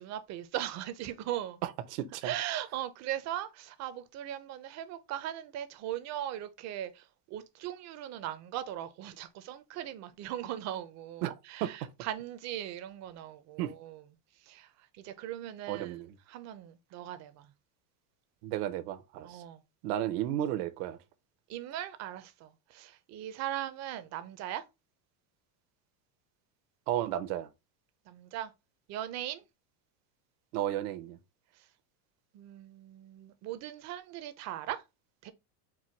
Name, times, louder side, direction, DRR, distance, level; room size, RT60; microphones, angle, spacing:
voice 1, 0.0-1.6 2.2-14.0 14.4-16.0 16.3-17.5 19.2-19.6 21.5-24.6 28.1-28.5 28.9-29.4 31.6-31.7 32.3-34.8 35.2-35.3, right 12 dB, 35° right, 0.6 m, -39 dB
voice 2, 1.6-2.3 11.2-11.9 13.6-13.7 15.7-16.1 18.4-19.4 19.8-21.0 26.9-27.5 30.5-31.2, right 12 dB, 75° right, 0.9 m, -33 dB
4.6 x 2.2 x 4.3 m
supercardioid pair, 150°, 47 cm